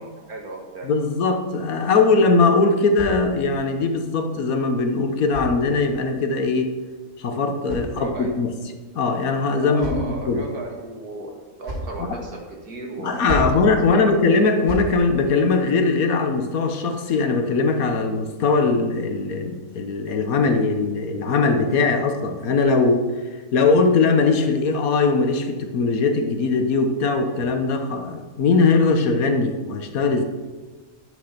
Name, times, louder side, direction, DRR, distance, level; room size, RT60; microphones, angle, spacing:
voice 1, 0.0-0.9 7.9-8.3 9.6-13.6 13.9-14.0, right 2 dB, 90° right, 1 dB, 2.3 m, -35 dB
voice 2, 0.8-6.7 7.2-8.6 8.9-10.5 12.0-12.2 13.0-23.1 23.5-30.2, left 4 dB, 75° left, 6 dB, 1.5 m, -20 dB
sound 1, 2.5-3.7 4.7-6.1 7.1-8.5 9.3-10.3 11.3-12.0 13.0-13.6 14.4-14.9, right 1 dB, 55° right, 3.1 m, -35 dB
11.0 x 6.3 x 5.8 m, 1.3 s
omnidirectional pair, 1.5 m